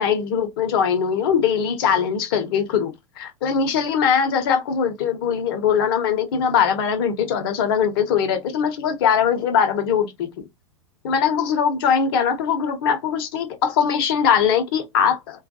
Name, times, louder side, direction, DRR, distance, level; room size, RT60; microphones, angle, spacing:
voice 1, 0.0-10.3 11.0-15.5, left 7 dB, 45° left, 0.7 m, -21 dB
2.2 x 2.2 x 2.6 m
figure-of-eight pair, 95°, 17 cm